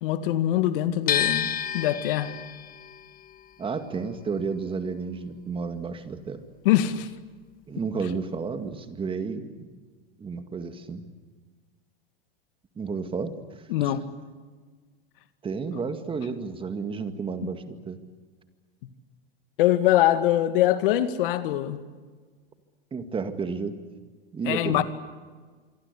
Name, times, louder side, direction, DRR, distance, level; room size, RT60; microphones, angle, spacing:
voice 1, 0.0-2.3 6.7-7.1 13.7-14.0 17.4-17.5 19.6-21.8 24.4-24.8, left 13 dB, 65° left, 2.1 m, -23 dB
sound 1, 1.1-7.1 7.4-8.7, left 9 dB, 30° left, 1.8 m, -32 dB
voice 2, 3.6-6.4 7.7-9.7 10.2-11.0 12.8-13.4 13.8-13.9 15.4-18.0 22.9-23.8 24.3-24.8, right 5 dB, 20° right, 2.1 m, -31 dB
27.0 x 23.5 x 8.4 m
hypercardioid pair, 125°, 29 cm